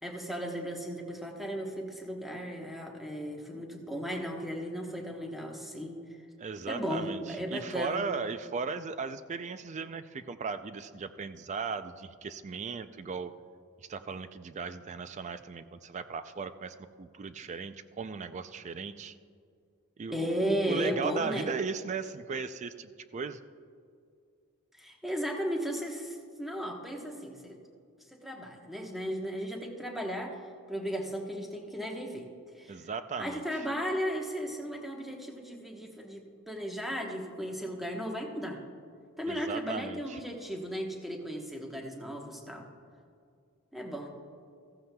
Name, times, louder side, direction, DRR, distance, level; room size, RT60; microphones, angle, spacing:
voice 1, 0.0-6.0 6.7-8.0 20.1-21.5 24.8-27.6 28.1-30.4 30.7-32.3 32.6-32.8 33.2-38.6 39.2-42.7 43.7-44.1, equal, ahead, 0 dB, 1.0 m, -35 dB
voice 2, 6.4-13.3 13.8-19.1 20.0-23.4 32.7-33.6 39.3-40.2, right 5 dB, 30° right, 11 dB, 0.3 m, -37 dB
15.0 x 14.5 x 2.3 m, 2.3 s
head